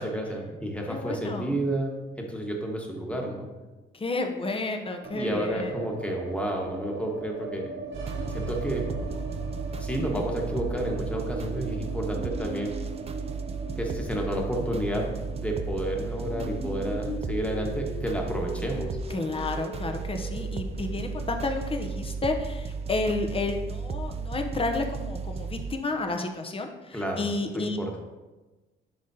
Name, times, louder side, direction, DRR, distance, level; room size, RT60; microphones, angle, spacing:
voice 1, 0.0-3.5 5.1-7.7 8.3-8.8 9.8-12.7 13.8-18.9 26.9-27.3 27.5-28.0, right 1 dB, 5° left, 0 dB, 1.3 m, -31 dB
voice 2, 0.9-1.5 3.9-5.7 19.1-27.8, left 3 dB, 30° left, 5 dB, 0.8 m, -31 dB
sound 1, 5.0-21.1 21.4-21.5 21.8-22.5, right 4 dB, 90° right, 0.8 m, -40 dB
sound 2, 7.9-25.7, right 4 dB, 30° right, 0.4 m, -34 dB
sound 3, 16.2-21.6, left 3 dB, 65° left, 1.1 m, -40 dB
10.5 x 3.6 x 2.8 m, 1.2 s
cardioid pair, 90°, 20 cm